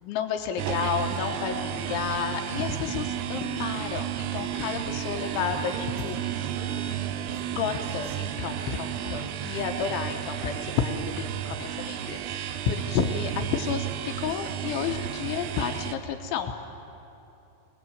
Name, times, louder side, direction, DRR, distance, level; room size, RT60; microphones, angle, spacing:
voice 1, 0.0-5.7 6.0-6.2 7.6-16.5, left 7 dB, 80° left, 4 dB, 3.1 m, -31 dB
voice 2, 0.6-1.6 5.1-7.6 7.9-8.2 8.6-9.1 9.4-9.8 13.2-13.4 14.1-14.5, right 3 dB, 65° right, 1 dB, 4.9 m, -45 dB
sound 1, 0.6-15.9, right 11 dB, 85° right, 3.5 m, -32 dB
23.5 x 20.0 x 7.9 m, 2.8 s
omnidirectional pair, 5.9 m